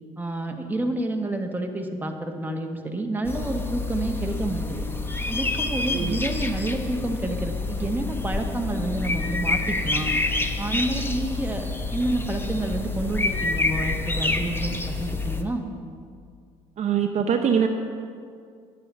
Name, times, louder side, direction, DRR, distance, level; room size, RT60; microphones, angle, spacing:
voice 1, 0.2-4.9 5.3-10.1 10.6-15.6, right 2 dB, 10° right, 3 dB, 1.4 m, -29 dB
sound 1, 3.2-15.4, left 3 dB, 15° left, 1.0 m, -28 dB
voice 2, 16.8-17.7, right 7 dB, 45° right, 4 dB, 0.8 m, -23 dB
10.5 x 9.0 x 5.6 m, 2.2 s
hypercardioid pair, 70°, 16 cm